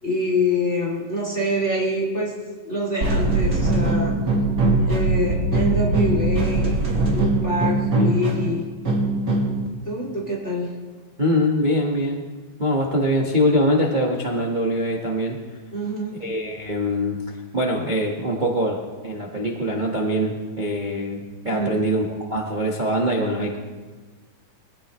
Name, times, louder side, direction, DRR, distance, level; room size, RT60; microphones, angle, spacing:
voice 1, 0.0-2.3 2.6-4.2 4.9-6.8 7.1-8.7 9.8-10.7 15.7-16.2 21.5-21.8, left 1 dB, 20° left, -3 dB, 3.1 m, -26 dB
sound 1, 3.0-9.7, right 2 dB, 30° right, 2.2 m, -21 dB
voice 2, 11.2-12.3 12.6-15.4 16.2-23.6, equal, 45° right, -1 dB, 0.5 m, -23 dB
24.0 x 17.0 x 3.2 m, 1.4 s
omnidirectional pair, 3.8 m